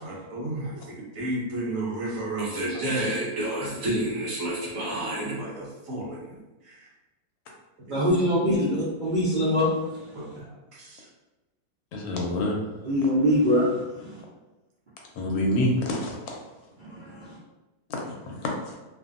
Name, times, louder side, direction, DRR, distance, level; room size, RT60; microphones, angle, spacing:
voice 1, 0.0-0.7 1.1-6.2 7.9-8.0 8.5-8.7 10.1-10.3, right 1 dB, 65° right, -4 dB, 1.0 m, -30 dB
voice 2, 7.9-8.8 9.0-9.7 12.8-13.7 16.9-17.3, equal, 85° right, -9 dB, 0.4 m, -22 dB
voice 3, 11.9-12.6 15.2-16.4 17.9-18.5, left 1 dB, 75° left, 0 dB, 1.0 m, -27 dB
2.6 x 2.5 x 2.4 m, 1.1 s
omnidirectional pair, 1.7 m